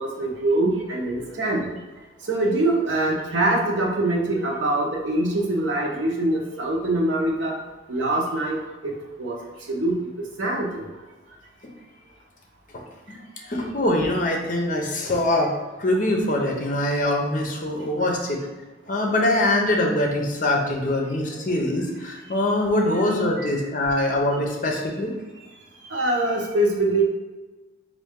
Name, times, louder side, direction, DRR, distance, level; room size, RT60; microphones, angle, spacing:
voice 1, 0.0-1.7 2.3-7.5 7.9-8.6 8.8-9.4 9.7-10.1 10.4-10.9 21.3-21.4 23.4-23.6 25.9-27.0, right 2 dB, 75° right, -1 dB, 0.9 m, -24 dB
voice 2, 13.5-15.5 15.8-18.4 18.9-25.1, left 1 dB, 45° left, 1 dB, 0.6 m, -23 dB
4.3 x 2.5 x 3.6 m, 1.2 s
head